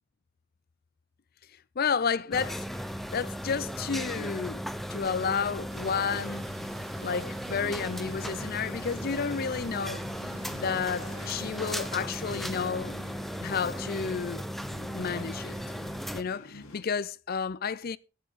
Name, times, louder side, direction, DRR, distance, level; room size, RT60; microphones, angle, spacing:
voice 1, 1.8-2.6 3.1-6.5 7.0-10.0 10.5-12.9 13.4-14.5 14.9-15.5 16.1-18.0, left 6 dB, 45° left, 0.5 m, -31 dB
sound 1, 2.3-16.2, equal, ahead, 0.7 m, -36 dB
sound 2, 5.7-11.7, right 6 dB, 75° right, 0.5 m, -50 dB
sound 3, 7.9-16.8, left 2 dB, 85° left, 3.0 m, -48 dB
14.5 x 10.5 x 3.6 m
head